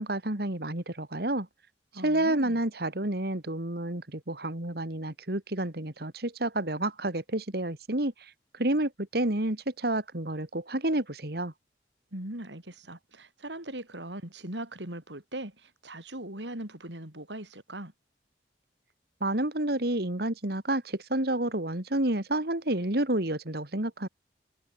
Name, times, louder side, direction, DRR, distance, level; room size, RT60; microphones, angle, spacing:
voice 1, 0.0-1.5 2.0-11.5 19.2-24.1, right 1 dB, 60° right, 2.7 m, -29 dB
voice 2, 1.9-2.6 12.1-17.9, right 1 dB, 85° right, 6.7 m, -40 dB
head